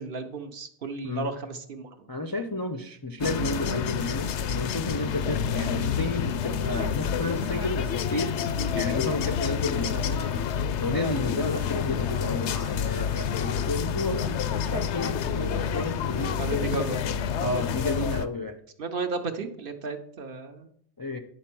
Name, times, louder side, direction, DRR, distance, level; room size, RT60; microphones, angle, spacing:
voice 1, 0.0-2.1 16.4-17.1 18.8-20.7, right 3 dB, 55° right, 6 dB, 1.0 m, -33 dB
voice 2, 2.1-8.3 8.7-10.4 10.8-16.4 17.4-18.6 21.0-21.2, left 2 dB, 30° left, 3 dB, 0.4 m, -32 dB
sound 1, 3.2-18.2, left 7 dB, 80° left, 0.9 m, -28 dB
10.0 x 4.3 x 6.0 m, 0.67 s
omnidirectional pair, 1.2 m